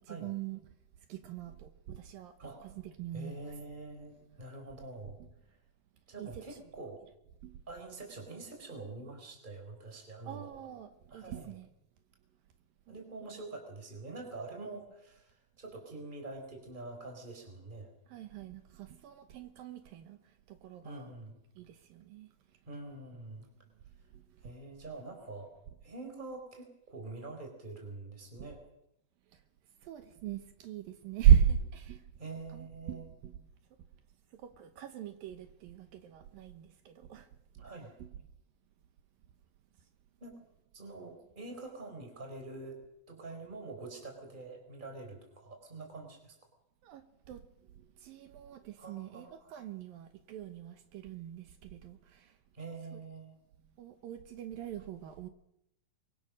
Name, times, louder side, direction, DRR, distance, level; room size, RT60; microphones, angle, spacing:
voice 1, 0.1-0.6 1.1-2.3 3.0-3.3 6.2-6.4 7.4-7.6 10.2-11.7 12.9-13.0 18.1-20.2 20.5-21.1 21.6-22.3 29.8-32.0 32.5-33.3 34.4-37.3 38.0-38.1 46.8-47.4 48.0-52.3 53.8-55.3, right 9 dB, 75° right, 2.8 m, -35 dB
voice 2, 2.4-2.7 3.1-5.2 6.1-7.0 7.7-10.5 11.1-11.6 12.9-17.9 20.8-21.4 22.6-23.5 24.4-25.5 25.8-28.6 32.2-33.0 37.6-37.9 40.2-40.4 40.7-42.8 43.1-46.3 48.8-49.5 52.5-53.3, right 3 dB, 10° right, 4.5 m, -45 dB
24.5 x 23.5 x 6.4 m
omnidirectional pair, 4.4 m